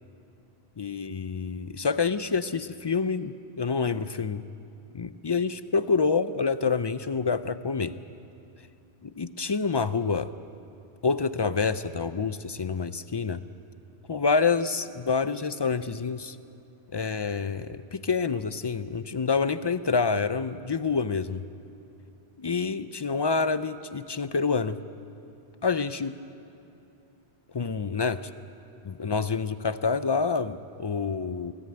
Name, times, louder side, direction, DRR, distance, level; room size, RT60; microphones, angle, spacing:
voice 1, 0.8-4.4 4.9-7.9 9.0-10.3 11.0-13.4 14.1-16.4 16.9-21.4 22.4-24.8 25.6-26.1 27.5-28.3 28.8-31.5, left 5 dB, 45° left, 13 dB, 0.3 m, -27 dB
24.0 x 14.0 x 8.8 m, 2.8 s
omnidirectional pair, 1.1 m